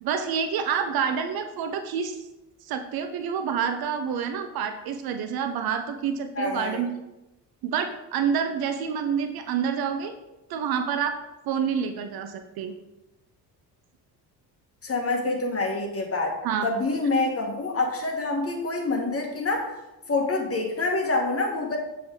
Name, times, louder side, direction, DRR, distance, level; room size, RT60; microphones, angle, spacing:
voice 1, 0.0-2.2 2.6-6.9 7.6-10.1 10.5-11.2 11.5-12.7 16.4-16.7, right 7 dB, 50° right, 7 dB, 0.7 m, -28 dB
voice 2, 6.4-6.8 14.8-19.8 20.1-21.8, left 3 dB, 30° left, 2 dB, 1.5 m, -26 dB
7.2 x 3.5 x 4.6 m, 0.98 s
figure-of-eight pair, 50°, 50 cm